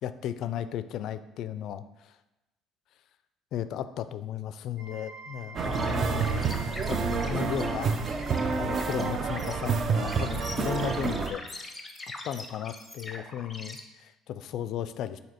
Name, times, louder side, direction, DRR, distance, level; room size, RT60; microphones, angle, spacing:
voice 1, 0.0-2.1 3.5-6.5 6.9-8.0 8.6-11.4 12.2-15.2, left 10 dB, 60° left, 13 dB, 0.3 m, -35 dB
sound 1, 4.8-10.8, right 3 dB, 70° right, 1.7 m, -47 dB
sound 2, 5.6-13.8, left 3 dB, 15° left, 0.6 m, -43 dB
sound 3, 5.6-11.3, right 5 dB, 35° right, 0.4 m, -28 dB
7.4 x 2.7 x 5.1 m, 0.98 s
cardioid pair, 145°, 0 cm